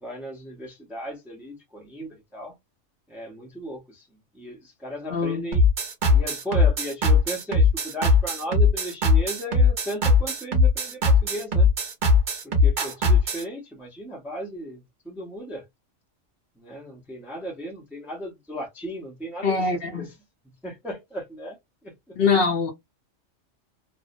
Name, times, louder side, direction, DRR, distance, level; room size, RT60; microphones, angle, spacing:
voice 1, 0.0-2.5 3.1-4.1 4.3-5.6 6.1-11.7 12.4-15.6 16.6-20.1 20.6-21.6 21.8-22.2, equal, ahead, 0.5 m, -36 dB
voice 2, 5.1-5.5 19.4-20.1 22.2-22.7, left 4 dB, 60° left, 0.8 m, -23 dB
sound 1, 5.5-13.4, left 3 dB, 45° right, 0.9 m, -19 dB
2.6 x 2.0 x 2.5 m
omnidirectional pair, 1.3 m